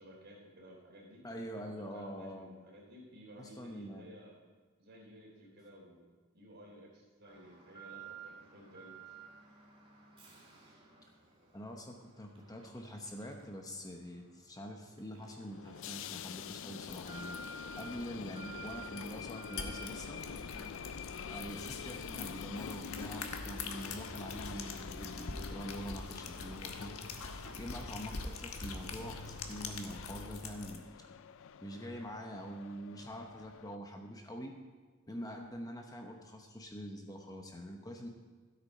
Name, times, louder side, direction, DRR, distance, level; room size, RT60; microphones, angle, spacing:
voice 1, 0.0-1.2 1.6-4.3 4.8-6.0 6.3-9.2 17.6-17.8, equal, 55° right, -2 dB, 3.3 m, -55 dB
voice 2, 1.2-2.5 3.4-4.1 11.5-17.4 17.8-20.2 21.3-27.0 27.6-31.1 31.6-34.5 35.1-38.1, equal, 15° left, 3 dB, 0.9 m, -45 dB
Alarm, 7.2-25.9 26.2-26.3 27.0-27.1, right 4 dB, 25° right, 2.3 m, -55 dB
sound 1, 15.4-33.8, left 8 dB, 60° left, 0.4 m, -47 dB
sound 2, 16.8-30.8, left 3 dB, 90° left, 1.2 m, -45 dB
13.0 x 8.4 x 5.4 m, 1.4 s
head